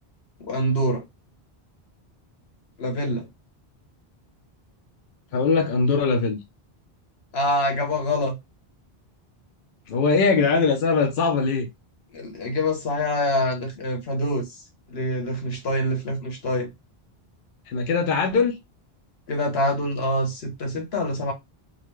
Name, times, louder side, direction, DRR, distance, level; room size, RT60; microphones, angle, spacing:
voice 1, 0.4-1.0 2.8-3.3 7.3-8.4 12.1-14.6 14.9-16.7 19.3-21.3, left 1 dB, 80° left, 1.3 m, -25 dB
voice 2, 5.3-6.4 9.9-11.7 17.7-18.5, left 4 dB, 65° left, 0.8 m, -21 dB
3.8 x 2.1 x 3.0 m
omnidirectional pair, 1.0 m